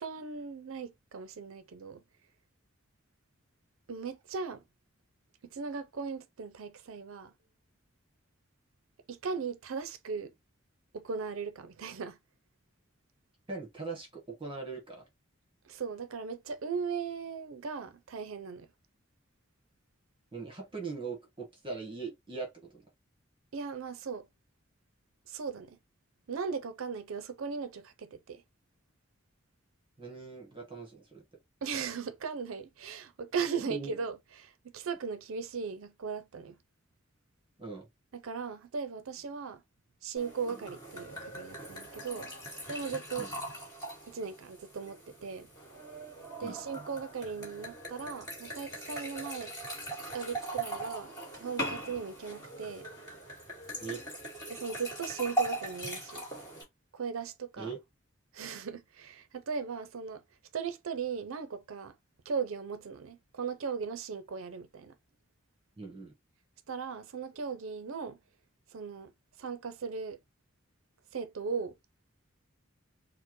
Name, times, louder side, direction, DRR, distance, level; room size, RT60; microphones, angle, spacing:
voice 1, 0.0-2.0 3.9-4.6 5.5-7.3 9.1-10.3 10.9-12.2 15.7-18.7 23.5-24.3 25.3-25.8 26.3-28.4 31.6-34.2 34.4-36.6 38.1-39.6 40.0-42.3 42.7-43.3 44.1-45.5 46.4-49.5 50.1-51.1 51.4-52.9 54.5-56.2 56.9-57.7 58.3-60.2 60.5-61.9 62.3-64.9 66.7-68.2 68.7-69.1 69.4-70.2 71.1-71.7, right 5 dB, 80° right, 0.5 m, -38 dB
voice 2, 13.5-15.1 20.3-22.8 30.0-31.2 33.6-33.9 37.6-37.9 43.2-43.3 46.4-46.6 53.8-54.0 57.6-57.8 65.8-66.1, right 4 dB, 25° right, 1.2 m, -41 dB
sound 1, 40.2-56.6, right 1 dB, 20° left, 1.9 m, -40 dB
4.3 x 2.1 x 2.9 m
head